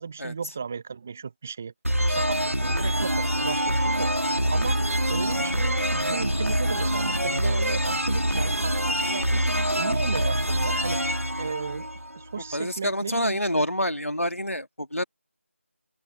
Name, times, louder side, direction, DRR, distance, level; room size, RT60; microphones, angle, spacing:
voice 1, 0.0-1.7 2.1-4.1 4.5-4.8 5.1-11.0 11.4-11.9 12.1-13.7, right 5 dB, 10° right, 0.4 m, -35 dB
sound 1, 1.8-12.4, equal, 90° right, 2.1 m, -25 dB
voice 2, 12.5-15.0, equal, 85° left, 2.4 m, -27 dB
open air
figure-of-eight pair, 165°, 7 cm